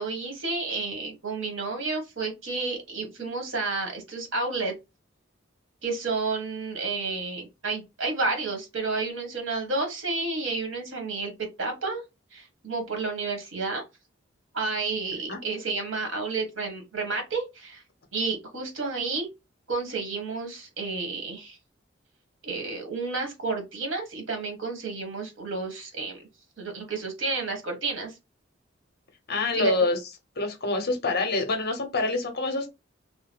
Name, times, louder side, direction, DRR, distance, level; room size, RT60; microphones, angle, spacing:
voice 1, 0.0-4.7 5.8-12.0 12.3-13.8 14.5-17.8 18.1-19.3 19.7-21.6 22.4-26.3 26.6-28.1 29.6-29.7, right 3 dB, 80° right, 1.2 m, -31 dB
voice 2, 29.3-30.0 30.4-32.7, left 3 dB, 55° left, 0.8 m, -26 dB
2.9 x 2.2 x 3.3 m
head